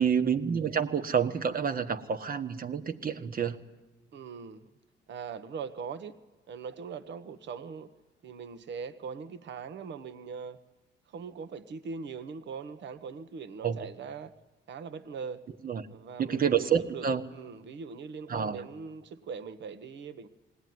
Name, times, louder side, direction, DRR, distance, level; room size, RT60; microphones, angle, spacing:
voice 1, 0.0-3.5 13.6-13.8 15.6-15.8 16.2-17.2 18.3-18.6, right 7 dB, 45° right, 10 dB, 1.5 m, -28 dB
voice 2, 4.1-4.7 5.1-6.2 6.5-7.9 8.2-10.6 11.1-14.3 14.7-15.4 15.9-20.3, right 5 dB, 65° right, 11 dB, 1.2 m, -41 dB
20.5 x 18.0 x 9.5 m, 1.1 s
cardioid pair, 90°, 20 cm